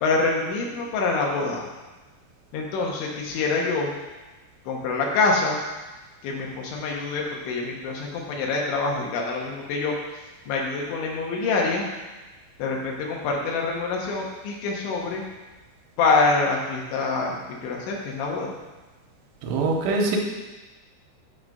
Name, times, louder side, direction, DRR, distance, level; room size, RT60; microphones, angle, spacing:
voice 1, 0.0-1.7 2.5-3.9 4.7-5.6 6.2-10.0 10.5-11.9 12.6-15.2 16.0-18.5, left 3 dB, 85° left, -1 dB, 3.6 m, -25 dB
voice 2, 19.4-20.2, right 3 dB, 80° right, 0 dB, 3.0 m, -23 dB
9.3 x 3.9 x 6.6 m, 1.2 s
omnidirectional pair, 5.2 m